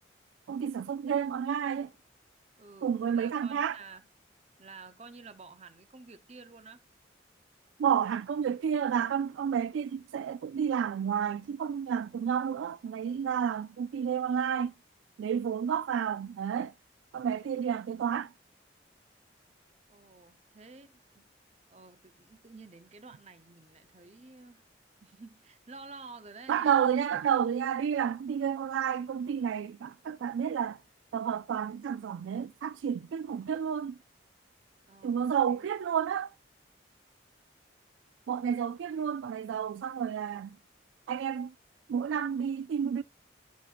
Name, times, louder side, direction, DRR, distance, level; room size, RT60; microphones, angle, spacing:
voice 1, 0.5-1.9 2.8-3.8 7.8-14.7 15.2-16.7 17.1-18.3 26.5-30.8 31.1-34.0 35.0-36.3 38.3-40.6 41.1-41.5 41.9-43.0, right 8 dB, 85° right, 0.3 m, -30 dB
voice 2, 2.6-4.0 4.6-6.8 19.9-21.3 21.7-24.6 25.0-26.7 34.9-35.7 39.0-39.4, right 4 dB, 35° right, 0.6 m, -51 dB
11.0 x 4.4 x 2.4 m
head